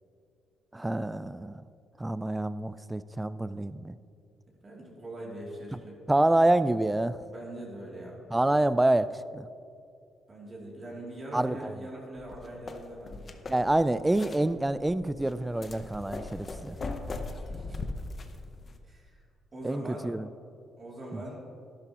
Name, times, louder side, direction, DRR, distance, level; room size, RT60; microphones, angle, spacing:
voice 1, 0.7-1.6 2.0-4.0 6.1-7.2 8.3-9.5 11.3-11.7 13.5-16.8 19.6-20.3 21.1-21.2, right 1 dB, 10° right, 15 dB, 0.3 m, -27 dB
voice 2, 4.6-5.9 7.2-8.2 10.3-13.4 17.3-17.8 18.9-19.2 19.5-20.1 20.8-21.4, right 1 dB, 40° right, -4 dB, 2.9 m, -42 dB
sound 1, 12.2-18.8, left 3 dB, 40° left, 0.9 m, -40 dB
12.0 x 11.5 x 3.0 m, 2.5 s
cardioid pair, 90°, 0 cm